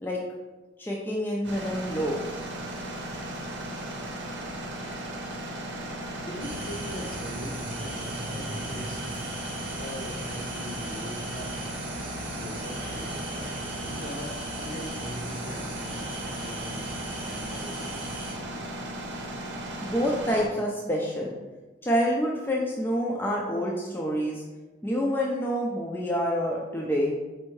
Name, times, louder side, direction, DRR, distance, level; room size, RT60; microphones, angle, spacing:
voice 1, 0.8-2.2 19.8-21.3 21.8-24.4 24.8-27.2, equal, 10° left, -3 dB, 0.3 m, -27 dB
sound 1, 1.4-20.5, right 1 dB, 70° right, 0.7 m, -36 dB
voice 2, 6.2-9.0 9.8-11.6 12.3-18.2, left 1 dB, 50° left, 0 dB, 0.7 m, -41 dB
sound 2, 6.4-18.3, right 1 dB, 25° right, 0.7 m, -39 dB
4.4 x 2.6 x 3.1 m, 1.2 s
head